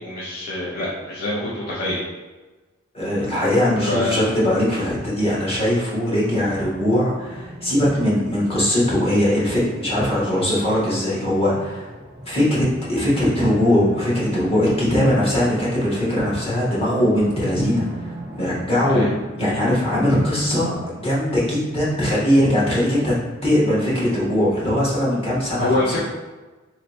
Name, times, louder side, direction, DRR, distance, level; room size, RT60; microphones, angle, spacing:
voice 1, 0.0-2.0 3.8-4.1 10.3-10.4 18.8-19.1 25.6-26.0, left 1 dB, 50° left, -8 dB, 0.8 m, -25 dB
voice 2, 2.9-11.9 12.2-19.0 19.4-23.1 23.4-26.0, left 1 dB, 30° left, -7 dB, 1.4 m, -20 dB
sound 1, 6.3-20.8, right 1 dB, 5° right, 0.9 m, -38 dB
3.2 x 3.0 x 4.3 m, 1.2 s
head